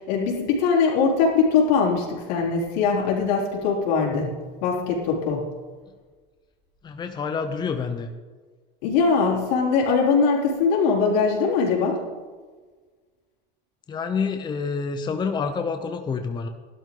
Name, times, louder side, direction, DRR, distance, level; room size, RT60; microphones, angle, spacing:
voice 1, 0.0-5.4 8.8-12.0, left 5 dB, 85° left, -2 dB, 4.1 m, -21 dB
voice 2, 6.8-8.1 13.9-16.5, left 5 dB, 20° left, 6 dB, 0.8 m, -28 dB
15.5 x 12.0 x 3.9 m, 1.4 s
cardioid pair, 145°, 21 cm